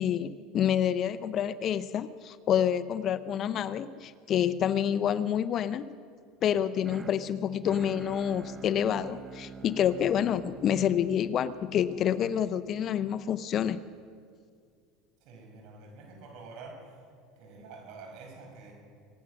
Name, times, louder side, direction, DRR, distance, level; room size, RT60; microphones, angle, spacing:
voice 1, 0.0-6.0 6.4-13.8, left 9 dB, 40° left, 0.6 m, -28 dB
sound 1, 6.5-12.6, right 5 dB, 20° right, 0.7 m, -46 dB
voice 2, 15.2-17.0 17.4-18.7, right 3 dB, 65° right, 5.3 m, -47 dB
24.0 x 9.7 x 6.2 m
supercardioid pair, 110°, 0 cm